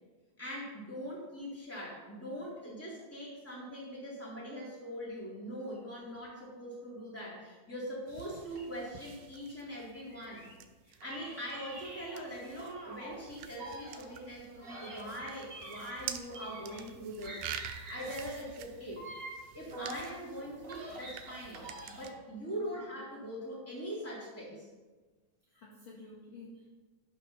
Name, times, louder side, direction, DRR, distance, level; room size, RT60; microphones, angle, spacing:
voice 1, 0.4-10.5 10.9-17.4 17.7-19.1 19.5-24.7, equal, 5° left, -6 dB, 3.4 m, -42 dB
sound 1, 8.1-22.1, right 10 dB, 85° right, 2.3 m, -48 dB
sound 2, 8.5-10.6 11.0-13.2 13.5-17.0 17.2-20.1 20.5-22.2, right 2 dB, 30° right, 2.2 m, -47 dB
voice 2, 22.4-22.7 25.5-26.8, left 2 dB, 45° left, -6 dB, 2.4 m, -51 dB
14.0 x 5.9 x 5.7 m, 1.3 s
omnidirectional pair, 3.7 m